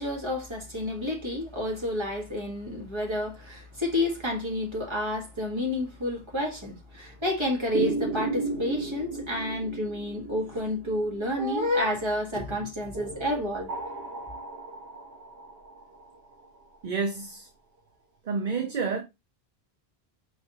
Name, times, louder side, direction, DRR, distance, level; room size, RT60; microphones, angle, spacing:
voice 1, 0.0-13.7, left 1 dB, 25° right, 1.7 m, -30 dB
sound 1, 7.7-12.0 12.9-16.8, right 3 dB, 85° right, 1.1 m, -35 dB
voice 2, 16.8-17.5 18.2-19.0, right 4 dB, 55° right, 0.7 m, -29 dB
5.5 x 3.3 x 2.9 m
omnidirectional pair, 1.1 m